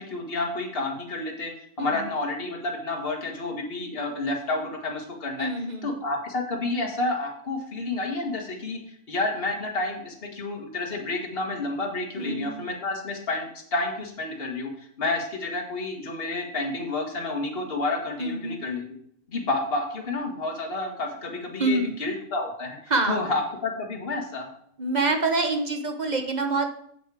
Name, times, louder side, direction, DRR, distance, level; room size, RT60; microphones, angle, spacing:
voice 1, 0.0-1.5 1.8-5.5 5.8-14.7 15.0-18.8 19.3-24.5, left 2 dB, 45° left, 0 dB, 1.9 m, -30 dB
voice 2, 1.8-2.1 5.4-5.9 12.2-12.6 18.2-18.6 21.6-22.0 22.9-23.2 24.8-26.7, right 3 dB, 35° right, 5 dB, 1.0 m, -26 dB
8.2 x 7.7 x 4.9 m, 0.69 s
omnidirectional pair, 1.4 m